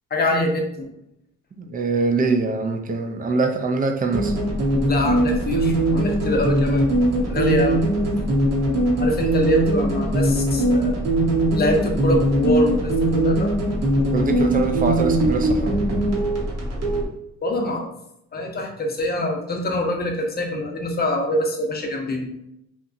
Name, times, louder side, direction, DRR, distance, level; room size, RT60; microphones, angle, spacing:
voice 1, 0.1-0.9 4.9-6.9 7.3-7.8 9.0-11.0 11.5-13.5 17.4-17.9 18.3-22.3, left 1 dB, 30° left, 2 dB, 0.6 m, -24 dB
voice 2, 1.6-4.3 14.1-15.7, right 3 dB, 30° right, 5 dB, 0.4 m, -23 dB
sound 1, 4.1-17.0, right 1 dB, 60° right, 0.9 m, -21 dB
2.9 x 2.2 x 2.5 m, 0.80 s
cardioid pair, 90°, 30 cm